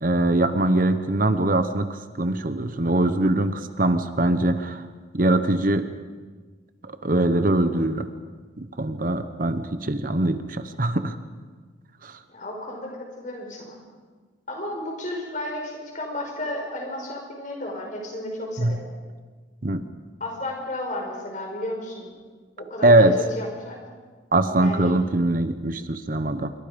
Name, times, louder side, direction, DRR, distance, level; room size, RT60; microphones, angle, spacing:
voice 1, 0.0-4.9 5.1-5.9 6.8-8.1 8.6-11.2 12.0-12.2 18.6-18.8 19.6-19.9 22.8-23.2 24.3-26.5, right 1 dB, 45° right, 10 dB, 0.9 m, -22 dB
voice 2, 12.3-13.8 14.5-18.9 20.2-22.1 22.6-23.1 23.4-23.8 24.6-24.9, left 1 dB, 40° left, 1 dB, 5.4 m, -33 dB
27.0 x 23.0 x 5.2 m, 1.4 s
head